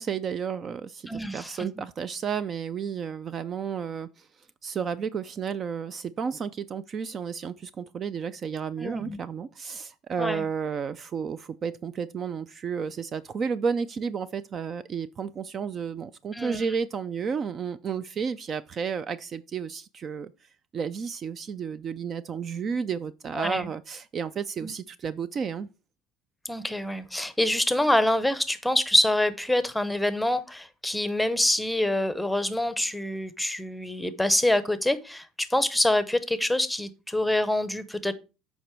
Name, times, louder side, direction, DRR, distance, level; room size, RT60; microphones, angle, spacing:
voice 1, 0.0-25.7, right 6 dB, 35° right, 0.4 m, -32 dB
voice 2, 1.1-1.6 8.8-9.2 10.2-10.4 16.3-16.6 23.3-23.7 24.6-24.7 26.4-38.1, left 1 dB, 5° left, 0.8 m, -26 dB
8.1 x 5.2 x 4.5 m
supercardioid pair, 110°, 0 cm